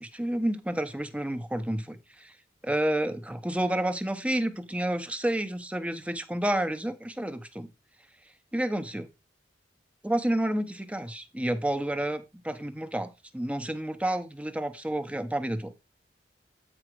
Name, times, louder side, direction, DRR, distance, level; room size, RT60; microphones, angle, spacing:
voice 1, 0.0-2.3 2.6-7.7 8.5-9.1 10.0-15.7, right 1 dB, 5° right, 10 dB, 0.8 m, -30 dB
8.7 x 4.9 x 4.6 m, 0.26 s
head